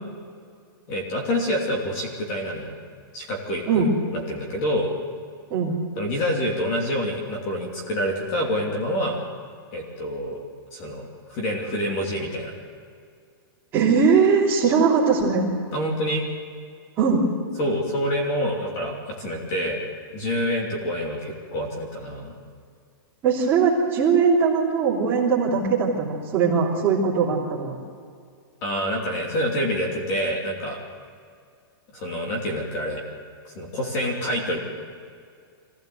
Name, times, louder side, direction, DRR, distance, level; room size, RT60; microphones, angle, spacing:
voice 1, 0.9-2.7 3.1-3.9 4.1-4.9 6.0-9.2 9.7-10.4 10.7-12.5 15.7-16.3 17.6-19.8 20.1-22.3 28.6-30.8 31.9-33.0 33.5-34.6, equal, 25° left, 0 dB, 3.0 m, -27 dB
voice 2, 13.7-15.4 17.0-17.3 23.2-27.7, right 5 dB, 15° right, -6 dB, 3.2 m, -20 dB
24.5 x 16.0 x 7.9 m, 2.2 s
supercardioid pair, 180°, 13 cm